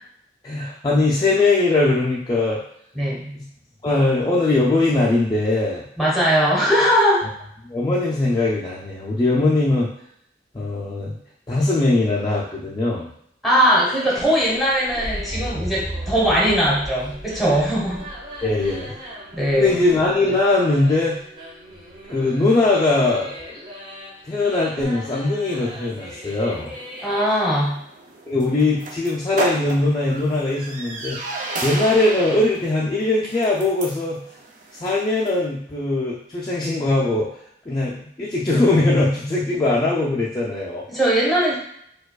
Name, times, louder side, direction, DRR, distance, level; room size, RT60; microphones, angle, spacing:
voice 1, 0.4-2.6 3.3-3.5 3.8-5.8 7.6-9.9 10.5-11.2 11.5-13.1 18.4-18.9 19.5-21.2 22.1-23.3 24.2-26.7 28.3-34.2 34.8-40.9, left 2 dB, 20° left, -6 dB, 0.4 m, -21 dB
voice 2, 3.0-3.4 6.0-7.3 13.4-18.1 19.3-19.8 27.0-27.8 40.9-41.6, equal, ahead, -5 dB, 1.0 m, -20 dB
sound 1, 13.5-27.7, equal, 25° right, 1.0 m, -39 dB
sound 2, 14.2-20.1 21.7-22.2 24.8-24.9, equal, 90° right, 1.0 m, -35 dB
sound 3, 25.4-35.4, right 2 dB, 45° right, 0.5 m, -34 dB
4.5 x 2.3 x 2.3 m, 0.69 s
head